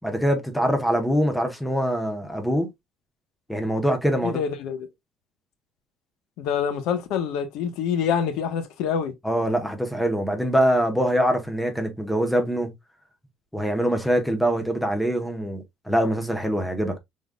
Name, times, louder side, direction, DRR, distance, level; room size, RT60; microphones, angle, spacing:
voice 1, 0.0-2.7 3.5-4.4 9.2-12.7 13.5-17.0, equal, 5° left, 0.8 m, -23 dB
voice 2, 4.2-4.9 6.4-9.1, left 7 dB, 90° left, 0.9 m, -26 dB
5.1 x 3.7 x 2.2 m
cardioid pair, 160°, 0 cm